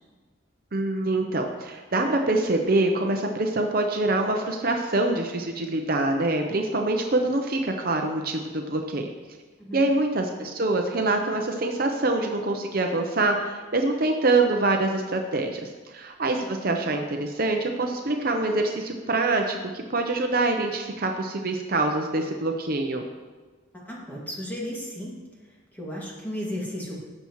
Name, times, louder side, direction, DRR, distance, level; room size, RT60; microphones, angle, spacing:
voice 1, 0.7-9.1 9.7-23.0, right 2 dB, 45° right, 3 dB, 0.7 m, -25 dB
voice 2, 9.6-9.9 23.7-25.2 25.7-27.1, equal, 10° left, -5 dB, 2.1 m, -34 dB
16.0 x 7.1 x 3.1 m, 1.4 s
head